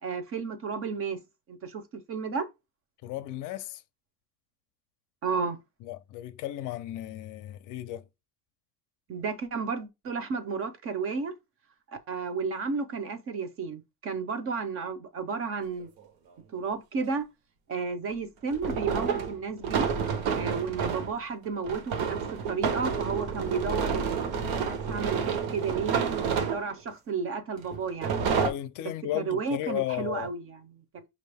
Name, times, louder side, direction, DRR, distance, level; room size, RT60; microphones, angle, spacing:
voice 1, 0.0-1.2 1.5-1.8 2.1-2.5 5.2-5.6 9.1-11.3 12.1-15.9 16.5-17.3 17.7-19.9 20.3-22.2 22.5-24.2 24.7-28.1 29.1-31.1, right 5 dB, 35° right, 0.6 m, -32 dB
voice 2, 3.0-3.8 5.8-8.0 28.4-30.3, left 14 dB, 55° left, 0.5 m, -34 dB
sound 1, 15.8-15.9 18.5-21.1 21.7-26.9 27.7-28.5, right 6 dB, 75° right, 1.0 m, -29 dB
6.1 x 2.5 x 3.4 m
cardioid pair, 175°, 37 cm